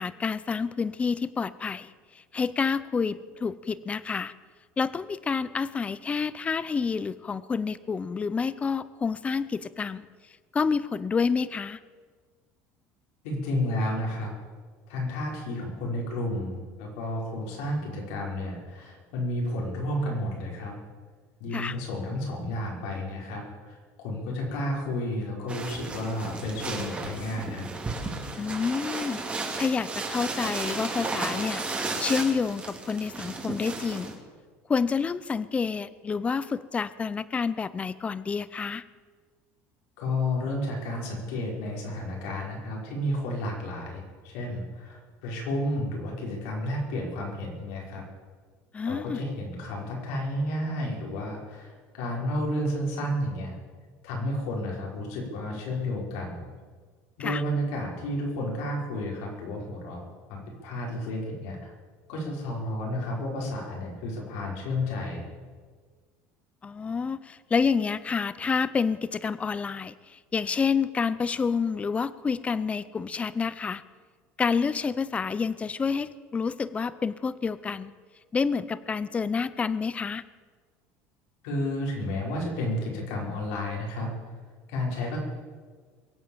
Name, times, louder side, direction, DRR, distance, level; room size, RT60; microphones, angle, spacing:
voice 1, 0.0-4.3 4.8-10.1 10.5-11.8 21.5-21.8 28.4-31.6 32.0-34.2 34.7-38.8 48.7-49.2 57.2-57.4 66.6-73.8 74.4-77.9 78.3-80.2, left 5 dB, 20° left, 17 dB, 0.6 m, -28 dB
voice 2, 13.2-14.3 14.9-20.7 21.4-27.7 40.0-48.0 48.8-53.6 54.0-56.4 57.2-61.7 62.1-65.2 81.4-84.1 84.7-85.2, left 1 dB, 80° left, -2 dB, 5.6 m, -31 dB
sound 1, 25.5-34.1, right 3 dB, 20° right, 2.8 m, -34 dB
22.5 x 8.4 x 7.4 m, 1.5 s
supercardioid pair, 125°, 6 cm